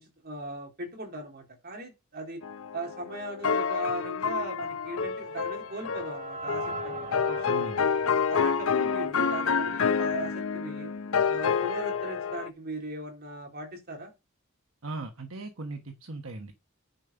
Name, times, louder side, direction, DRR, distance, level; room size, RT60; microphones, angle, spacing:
voice 1, 0.0-2.4 2.7-7.7 8.3-10.9 11.3-14.1, right 1 dB, 50° right, 3.9 m, -38 dB
sound 1, 2.4-12.5, left 6 dB, 85° left, 0.7 m, -28 dB
sound 2, 4.6-9.8, right 3 dB, 35° right, 1.1 m, -42 dB
voice 2, 7.5-7.9 14.8-16.5, right 2 dB, 75° right, 1.2 m, -38 dB
10.5 x 5.1 x 5.8 m
head